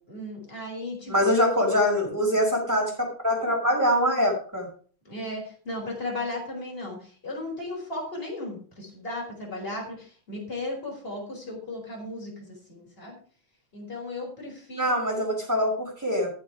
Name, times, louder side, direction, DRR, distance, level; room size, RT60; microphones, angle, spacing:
voice 1, 0.1-1.5 5.0-13.2 13.7-15.2, left 2 dB, 25° left, -2 dB, 4.8 m, -36 dB
voice 2, 1.1-2.9 3.2-4.7 14.8-16.3, equal, 10° right, -2 dB, 5.3 m, -23 dB
14.0 x 6.5 x 4.9 m, 0.42 s
omnidirectional pair, 2.3 m